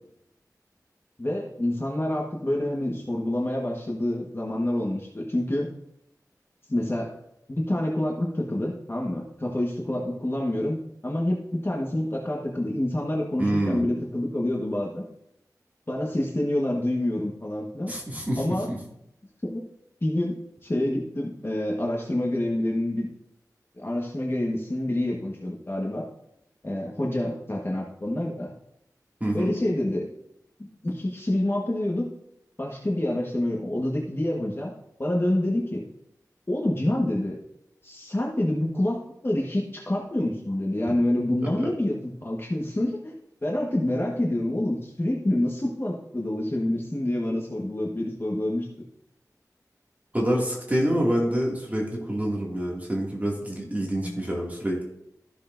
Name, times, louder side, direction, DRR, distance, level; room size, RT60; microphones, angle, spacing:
voice 1, 1.2-5.7 6.7-7.1 7.5-15.0 15.9-17.9 18.4-18.7 19.4-19.6 20.0-20.3 20.6-23.1 23.7-26.0 26.6-28.5 29.3-30.1 30.6-32.1 32.6-34.7 35.0-35.8 36.5-37.4 37.8-41.9 42.2-43.1 43.4-48.7 54.0-54.2, left 1 dB, 35° left, -2 dB, 1.3 m, -27 dB
voice 2, 13.4-13.9 17.9-18.4 18.7-18.8 29.2-29.5 40.9-41.0 50.1-54.8, right 1 dB, 25° right, -3 dB, 2.2 m, -26 dB
14.0 x 6.7 x 2.6 m, 0.79 s
wide cardioid pair, 70°, 7 cm